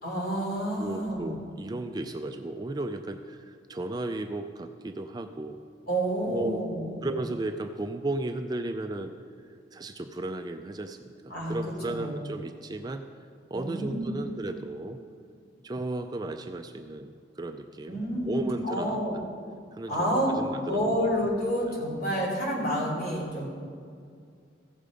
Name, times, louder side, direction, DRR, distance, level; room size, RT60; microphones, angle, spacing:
voice 1, 0.0-1.3 5.9-6.9 11.3-11.6 11.9-12.1 13.5-14.1 17.9-19.2 19.9-20.3 20.6-23.5, equal, 50° left, -3 dB, 3.1 m, -29 dB
voice 2, 0.8-5.6 6.3-6.6 7.0-9.1 9.7-13.1 13.5-15.0 15.6-19.0 19.7-21.1 21.7-21.8, right 2 dB, 20° right, 6 dB, 0.3 m, -35 dB
15.5 x 6.7 x 5.0 m, 2.2 s
head